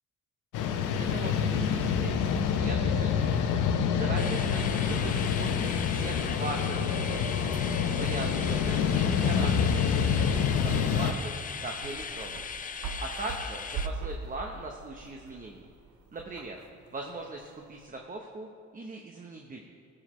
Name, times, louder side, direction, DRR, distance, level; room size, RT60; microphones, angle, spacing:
sound 1, 0.5-11.1, left 7 dB, 85° left, 0.7 m, -27 dB
voice 1, 0.9-3.5 3.9-7.4 7.9-10.3 10.6-12.4 13.0-15.7 16.1-16.6 16.9-18.5 18.7-19.6, right 2 dB, 25° right, 2 dB, 0.9 m, -40 dB
sound 2, 4.2-13.9, left 6 dB, 30° left, 0.5 m, -39 dB
sound 3, 7.1-17.9, right 4 dB, 75° right, 1.0 m, -43 dB
18.5 x 6.4 x 3.1 m, 2.3 s
cardioid pair, 90°, 30 cm